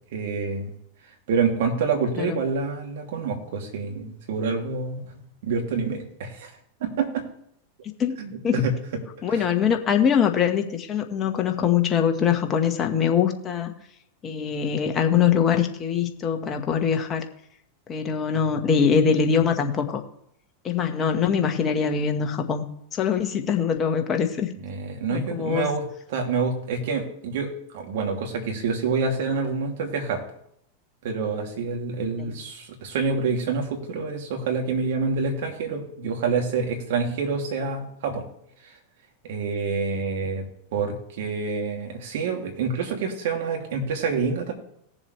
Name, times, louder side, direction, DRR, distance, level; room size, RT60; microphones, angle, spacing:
voice 1, 0.1-0.7 1.3-5.0 5.4-6.5 6.8-7.2 8.2-8.7 9.3-9.4 24.6-25.8 26.1-30.2 31.0-38.3 39.2-40.5 40.7-44.5, right 4 dB, 70° right, 2 dB, 2.8 m, -27 dB
voice 2, 9.2-13.7 14.2-17.2 17.9-20.0 20.6-22.6 22.9-24.5 25.1-25.8 32.2-32.3, left 7 dB, 30° left, 4 dB, 1.5 m, -23 dB
18.5 x 7.2 x 3.3 m, 0.72 s
hypercardioid pair, 105°, 0 cm